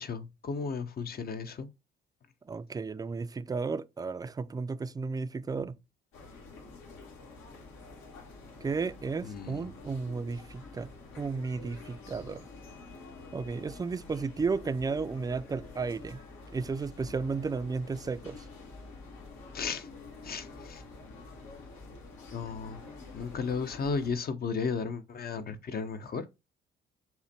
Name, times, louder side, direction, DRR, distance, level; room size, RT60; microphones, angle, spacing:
voice 1, 0.0-1.7 9.2-9.6 19.5-19.9 20.2-20.8 22.3-22.8 23.1-26.2, left 5 dB, 50° left, 0.7 m, -34 dB
voice 2, 2.5-5.8 8.6-10.9 11.2-12.4 13.3-16.2 16.5-18.5, right 4 dB, 20° right, 0.4 m, -33 dB
sound 1, 6.1-24.1, left 3 dB, 85° left, 1.7 m, -48 dB
5.6 x 2.2 x 4.2 m
cardioid pair, 90°, 20 cm